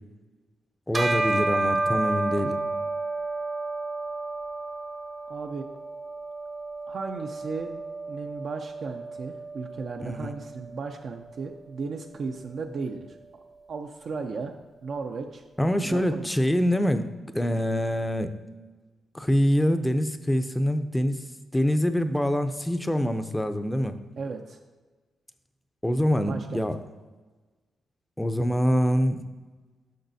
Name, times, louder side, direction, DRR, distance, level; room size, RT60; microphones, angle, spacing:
voice 1, 0.9-2.6 10.0-10.3 15.6-18.3 19.1-21.2 21.5-24.0 25.8-26.8 28.2-29.2, equal, 5° left, 9 dB, 0.5 m, -25 dB
Bell, 0.9-10.6, right 2 dB, 30° right, 0.7 m, -31 dB
voice 2, 5.3-5.7 6.9-7.8 8.1-13.1 13.7-14.6 14.8-15.4 15.8-16.4 24.2-24.6 26.2-26.7, right 4 dB, 60° right, 3 dB, 0.5 m, -35 dB
10.5 x 6.1 x 2.7 m, 1.3 s
cardioid pair, 95°, 0 cm